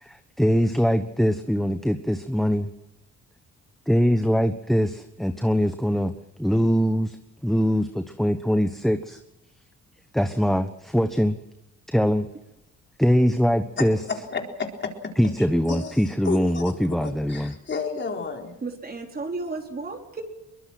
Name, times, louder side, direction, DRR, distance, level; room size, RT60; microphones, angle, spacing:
voice 1, 0.0-2.7 3.9-6.1 6.4-7.2 7.4-9.2 10.1-11.4 11.9-12.3 13.0-14.0 15.2-17.5, equal, ahead, 8 dB, 1.2 m, -22 dB
voice 2, 13.8-15.1 15.4-18.5, left 4 dB, 40° left, 2 dB, 4.3 m, -32 dB
voice 3, 18.6-20.2, right 3 dB, 30° right, 3 dB, 4.1 m, -33 dB
23.0 x 21.0 x 6.1 m, 0.97 s
cardioid pair, 90°, 30 cm